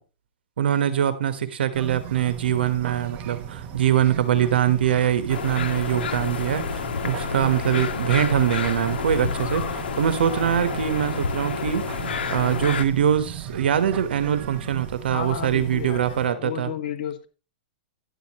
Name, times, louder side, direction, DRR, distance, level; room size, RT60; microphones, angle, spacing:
voice 1, 0.6-12.0 12.3-16.7, right 10 dB, 80° right, 1.2 m, -23 dB
sound 1, 1.7-16.3, right 9 dB, 30° right, 1.1 m, -37 dB
sound 2, 5.3-12.8, left 6 dB, 80° left, 1.6 m, -29 dB
voice 2, 15.1-17.3, left 9 dB, 55° left, 1.9 m, -32 dB
11.5 x 9.4 x 3.0 m
hypercardioid pair, 155°, 5 cm